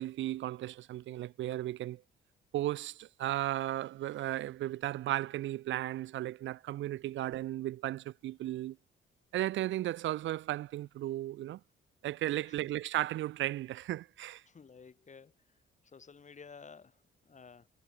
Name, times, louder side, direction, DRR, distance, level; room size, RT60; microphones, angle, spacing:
voice 1, 0.0-2.0 2.5-8.8 9.3-11.6 12.0-14.4, right 14 dB, 75° right, 0.6 m, -35 dB
voice 2, 12.4-12.7 14.5-17.7, left 5 dB, 35° left, 4.1 m, -54 dB
cardioid pair, 90°, 20 cm